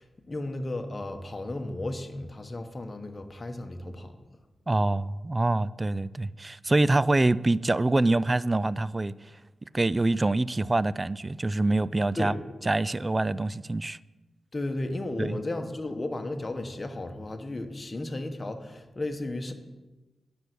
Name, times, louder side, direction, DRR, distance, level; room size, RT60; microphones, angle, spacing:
voice 1, 0.0-4.2 12.2-12.4 14.5-19.5, left 2 dB, 30° left, 1.3 m, -34 dB
voice 2, 4.7-9.1 9.7-14.0 15.2-15.4, right 2 dB, 25° right, 0.3 m, -25 dB
9.8 x 6.9 x 6.3 m
cardioid pair, 60°, 0 cm